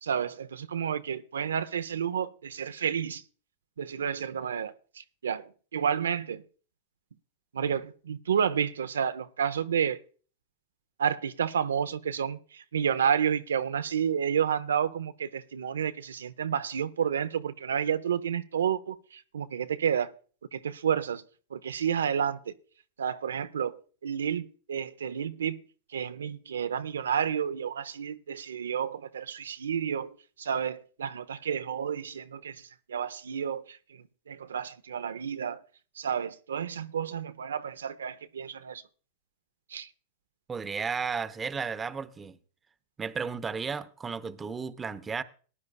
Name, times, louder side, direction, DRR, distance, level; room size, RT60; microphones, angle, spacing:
voice 1, 0.0-3.2 3.8-6.4 7.5-10.0 11.0-20.1 20.5-21.2 21.5-22.5 23.0-25.6 25.9-35.6 36.0-38.8 39.7-39.9, right 8 dB, 85° right, 0.6 m, -30 dB
voice 2, 40.5-42.4 43.0-45.2, right 5 dB, 20° right, 0.7 m, -33 dB
18.5 x 10.5 x 2.2 m
hypercardioid pair, 110°, 0 cm